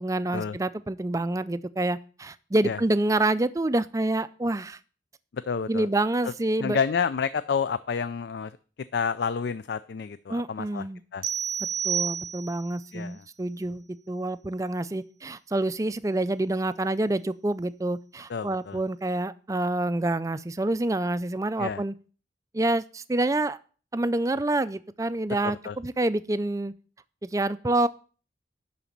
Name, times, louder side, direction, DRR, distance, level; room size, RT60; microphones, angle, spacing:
voice 1, 0.0-4.8 5.7-6.8 10.3-11.0 11.8-22.0 22.5-23.6 23.9-26.7 27.2-27.9, right 2 dB, 15° right, 14 dB, 0.3 m, -27 dB
voice 2, 5.3-5.9 6.2-6.3 6.6-8.5 8.9-10.8 11.1-11.2 12.9-13.2 18.3-18.8 21.6-21.8 25.4-25.8, left 6 dB, 65° left, 15 dB, 0.4 m, -29 dB
sound 1, 11.2-12.8, right 8 dB, 75° right, 0.6 m, -30 dB
11.0 x 4.0 x 7.1 m, 0.39 s
head